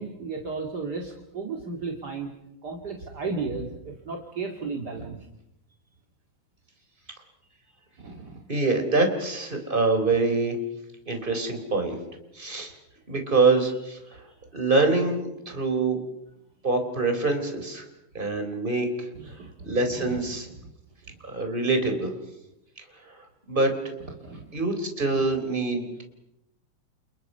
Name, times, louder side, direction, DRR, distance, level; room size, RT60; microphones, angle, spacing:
voice 1, 0.0-2.3 2.6-5.2 8.0-8.4 19.1-20.3 24.2-24.6, right 4 dB, 40° right, 1 dB, 1.5 m, -34 dB
voice 2, 8.5-10.6 11.0-12.0 12.3-12.7 13.1-14.0 14.5-16.0 16.6-17.8 18.1-19.1 19.6-20.5 21.2-22.1 23.0-23.7 24.5-26.0, right 3 dB, 10° right, 5 dB, 3.3 m, -25 dB
30.0 x 28.5 x 5.6 m, 0.88 s
omnidirectional pair, 5.2 m